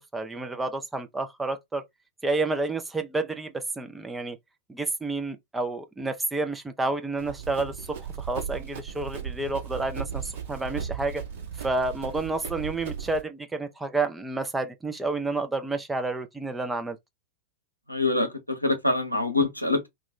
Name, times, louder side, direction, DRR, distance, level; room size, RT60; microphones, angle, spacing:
voice 1, 0.0-1.8 2.2-4.4 4.7-11.2 11.6-17.0, right 3 dB, 10° right, 0.5 m, -30 dB
Run, 7.2-13.2, right 7 dB, 55° right, 1.0 m, -36 dB
voice 2, 17.9-19.9, left 2 dB, 90° left, 0.7 m, -25 dB
2.4 x 2.2 x 3.5 m
figure-of-eight pair, 90°, 0 cm